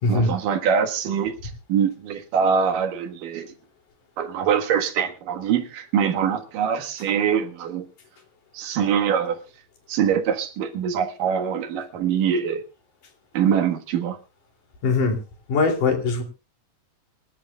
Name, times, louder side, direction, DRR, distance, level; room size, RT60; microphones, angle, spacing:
voice 1, 0.1-3.5 4.2-7.9 8.5-9.4 9.9-12.6 13.3-14.2, right 7 dB, 80° right, 6 dB, 3.2 m, -23 dB
voice 2, 14.8-15.2 15.5-16.2, left 3 dB, 70° left, 4 dB, 4.4 m, -21 dB
26.0 x 11.5 x 2.3 m, 0.30 s
omnidirectional pair, 3.8 m